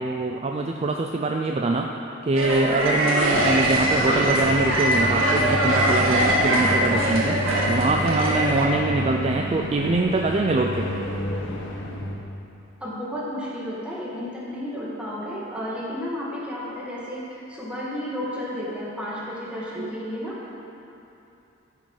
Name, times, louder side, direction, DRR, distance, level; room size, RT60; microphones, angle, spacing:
voice 1, 0.0-1.9 2.2-7.4 7.7-10.9 19.8-19.9, right 2 dB, 30° right, 2 dB, 0.4 m, -24 dB
sound 1, 2.4-8.7, right 1 dB, 90° right, 1.6 m, -22 dB
sound 2, 3.3-12.2, left 1 dB, 60° left, 1.3 m, -30 dB
voice 2, 8.9-9.3 12.8-20.6, equal, 5° right, -7 dB, 1.8 m, -32 dB
14.0 x 5.4 x 5.5 m, 2.9 s
head